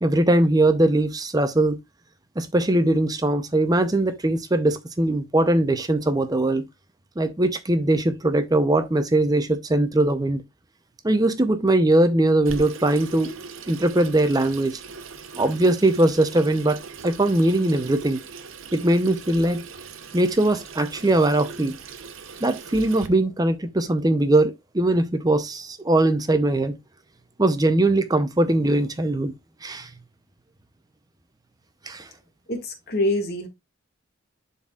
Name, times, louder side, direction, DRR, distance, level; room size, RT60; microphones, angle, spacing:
voice 1, 0.0-1.8 2.4-6.6 7.2-10.4 11.0-13.3 13.7-14.8 15.3-16.8 17.0-18.2 18.7-19.7 20.1-21.8 22.4-26.8 27.4-29.3 29.6-29.9 31.9-32.1, right 1 dB, 20° right, 0.6 m, -21 dB
Water tap faucet / Sink (filling or washing), 12.4-23.1, right 5 dB, 75° right, 0.8 m, -40 dB
voice 2, 32.5-33.5, left 1 dB, 50° left, 1.7 m, -25 dB
11.0 x 4.1 x 2.3 m
head